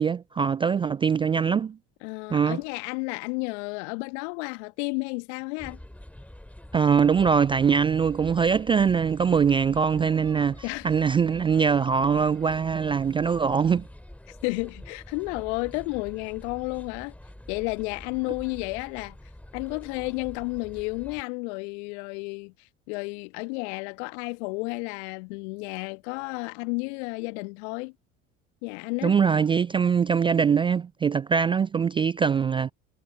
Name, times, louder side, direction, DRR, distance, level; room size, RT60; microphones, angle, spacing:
voice 1, 0.0-1.8 2.3-2.6 6.7-13.9 29.0-32.7, right 6 dB, 15° right, 0.3 m, -22 dB
voice 2, 2.0-5.8 10.6-10.9 14.4-17.1 17.5-19.2 19.5-22.5 22.9-27.9 28.6-29.2, left 32 dB, 65° left, 1.8 m, -32 dB
sound 1, 5.6-21.2, left 1 dB, 5° left, 2.6 m, -46 dB
figure-of-eight pair, 65°, 37 cm